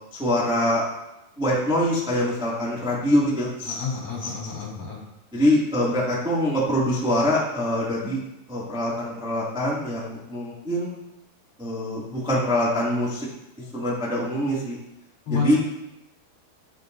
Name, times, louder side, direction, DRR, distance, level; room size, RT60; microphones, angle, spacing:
voice 1, 0.2-0.8 1.4-3.8 4.2-4.3 5.3-8.2 8.5-11.0 11.6-13.3 13.7-14.8 15.3-15.6, left 1 dB, 5° right, -6 dB, 0.4 m, -24 dB
voice 2, 3.6-5.0 15.3-15.6, left 5 dB, 40° left, -4 dB, 4.1 m, -29 dB
12.0 x 9.2 x 2.7 m, 0.90 s
omnidirectional pair, 4.6 m